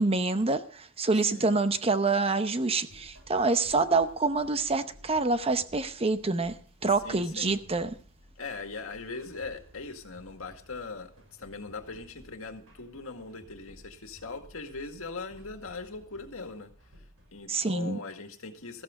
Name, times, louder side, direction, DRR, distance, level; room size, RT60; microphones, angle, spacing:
voice 1, 0.0-6.6 6.8-7.9 17.5-18.0, right 3 dB, 30° right, 0.8 m, -26 dB
sound 1, 2.9-17.4, equal, 70° right, 6.8 m, -56 dB
voice 2, 7.0-7.6 8.4-16.7 17.3-18.8, left 3 dB, 80° left, 2.0 m, -40 dB
14.5 x 14.0 x 3.7 m
head